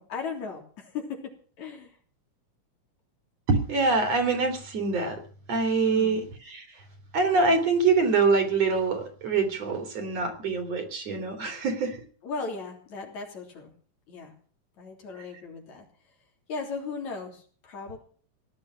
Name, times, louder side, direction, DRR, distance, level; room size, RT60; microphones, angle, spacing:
voice 1, 0.0-2.0 5.9-6.2 12.2-13.7 14.1-14.3 14.8-15.9 16.5-18.0, left 4 dB, 65° left, 3 dB, 4.7 m, -37 dB
voice 2, 3.5-5.2 5.5-6.7 7.1-12.0, right 4 dB, 55° right, 7 dB, 4.0 m, -25 dB
18.0 x 11.5 x 6.1 m, 0.43 s
omnidirectional pair, 3.4 m